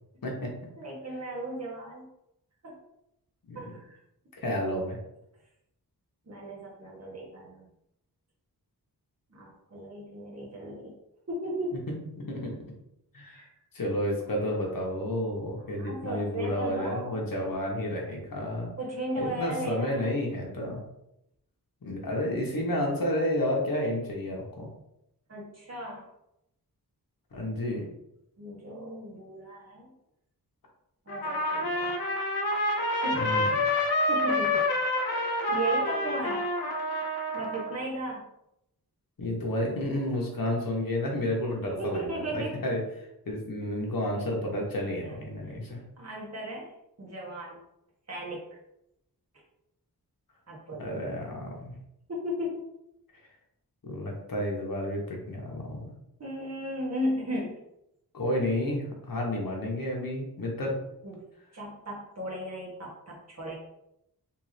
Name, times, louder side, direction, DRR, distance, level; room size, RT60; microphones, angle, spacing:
voice 1, 0.2-0.7 3.4-3.8 4.4-5.0 12.2-12.6 13.1-13.4 13.7-18.7 19.2-20.8 21.8-24.7 27.3-27.9 33.1-33.5 39.2-45.8 50.8-51.7 53.8-55.9 58.1-60.8, left 1 dB, 65° left, -1 dB, 1.2 m, -31 dB
voice 2, 0.8-2.1 2.6-2.8 3.5-4.0 4.4-4.6 6.3-7.7 9.3-10.9 11.3-11.8 13.3-13.5 14.3-14.6 15.7-17.2 18.8-20.2 25.3-26.1 27.4-27.5 28.4-29.9 31.0-31.9 33.0-33.3 34.1-34.6 35.5-36.5 37.3-38.3 41.6-42.6 46.0-46.7 47.0-47.6 48.1-48.4 50.5-50.9 52.1-52.6 56.2-57.6 61.0-61.2 61.5-63.5, right 1 dB, 45° right, -4 dB, 1.5 m, -36 dB
Trumpet, 31.1-37.9, left 1 dB, 80° left, 0.7 m, -28 dB
3.6 x 3.1 x 3.2 m, 0.83 s
wide cardioid pair, 95°, 37 cm